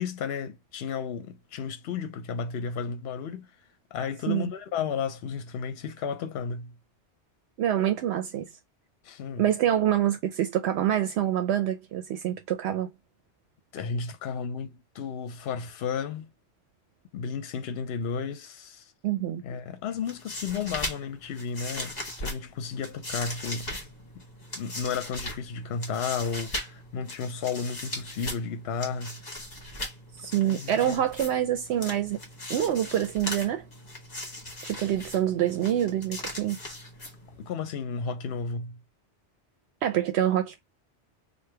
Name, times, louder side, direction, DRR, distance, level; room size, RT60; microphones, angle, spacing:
voice 1, 0.0-3.5 3.9-6.7 9.0-9.5 13.7-16.3 17.1-18.9 19.4-23.8 24.5-29.2 30.4-31.1 37.4-38.8, left 6 dB, 70° left, 0.8 m, -33 dB
voice 2, 7.6-8.5 9.4-12.9 19.0-19.4 30.2-32.2 32.5-33.6 34.6-36.6 39.8-40.6, right 11 dB, 75° right, 0.8 m, -26 dB
sound 1, 19.9-37.5, left 1 dB, 40° left, 1.2 m, -39 dB
3.3 x 2.2 x 3.2 m
omnidirectional pair, 1.2 m